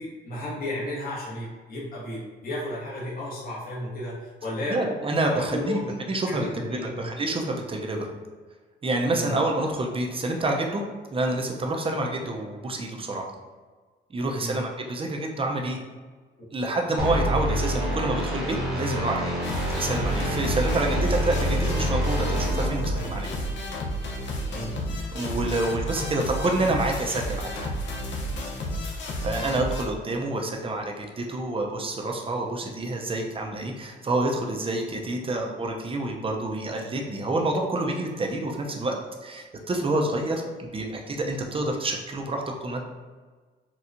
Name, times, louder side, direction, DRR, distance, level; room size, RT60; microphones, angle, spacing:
voice 1, 0.0-4.8 5.3-5.9 6.3-7.1 9.1-9.3 14.4-14.6 24.5-24.8 29.4-29.5, left 1 dB, 45° left, -7 dB, 1.1 m, -33 dB
voice 2, 4.7-5.8 6.1-8.1 8.8-10.8 11.1-13.3 14.1-15.8 16.5-19.2 19.8-23.3 25.1-27.7 29.2-38.9 39.2-42.8, right 2 dB, 25° right, 1 dB, 0.6 m, -28 dB
sound 1, 17.0-23.5, equal, ahead, 1.0 m, -27 dB
sound 2, 19.4-29.8, left 1 dB, 70° left, 0.7 m, -32 dB
4.4 x 2.3 x 2.6 m, 1.4 s
cardioid pair, 90°, 20 cm